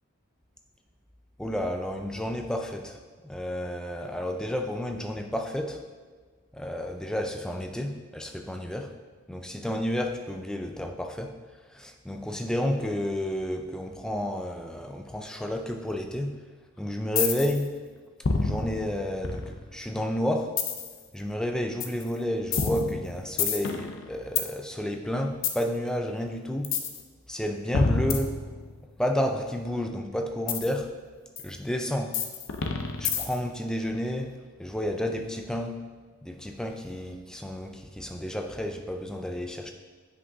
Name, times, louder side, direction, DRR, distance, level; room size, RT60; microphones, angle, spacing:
voice 1, 1.4-5.8 6.5-8.9 9.3-11.3 11.7-16.4 16.8-17.7 18.3-20.6 21.1-26.7 27.3-28.3 29.0-30.9 31.4-32.1 33.0-34.3 34.6-35.8 36.2-39.7, equal, 5° left, 4 dB, 0.3 m, -31 dB
sound 1, 17.2-17.6 18.2-19.8 20.6-21.0 21.8-22.0 22.5-24.5 25.4-25.6 26.6-27.0 27.7-28.9 30.5-30.7 31.4-31.5 32.1-33.5, left 5 dB, 60° left, 0.6 m, -28 dB
8.2 x 5.2 x 2.7 m, 1.4 s
head